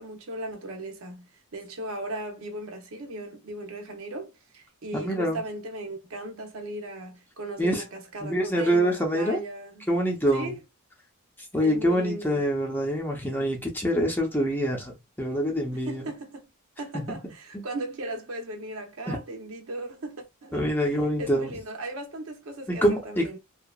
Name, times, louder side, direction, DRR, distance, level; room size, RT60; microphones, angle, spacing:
voice 1, 0.0-9.9 10.3-10.6 11.6-12.4 15.7-16.5 16.8-23.4, right 1 dB, 65° right, 0.7 m, -37 dB
voice 2, 4.9-5.4 7.6-7.8 8.2-9.4 9.9-10.5 11.5-16.0 16.9-17.2 17.5-17.6 19.1-19.2 20.5-21.5 22.7-23.3, equal, 10° left, 0.7 m, -25 dB
2.8 x 2.4 x 2.3 m
head